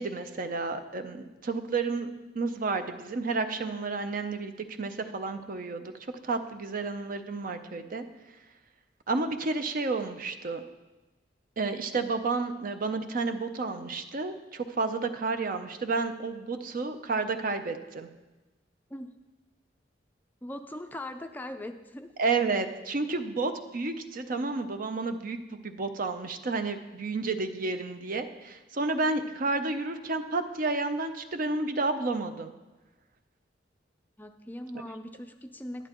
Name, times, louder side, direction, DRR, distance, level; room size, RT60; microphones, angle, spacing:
voice 1, 0.0-4.5 4.8-5.9 6.2-8.1 9.1-10.6 11.6-18.1 22.2-32.5, right 3 dB, 50° right, 8 dB, 0.6 m, -31 dB
voice 2, 20.4-22.1 34.2-35.9, left 1 dB, 10° left, 7 dB, 0.4 m, -40 dB
11.0 x 11.0 x 3.0 m, 1.1 s
head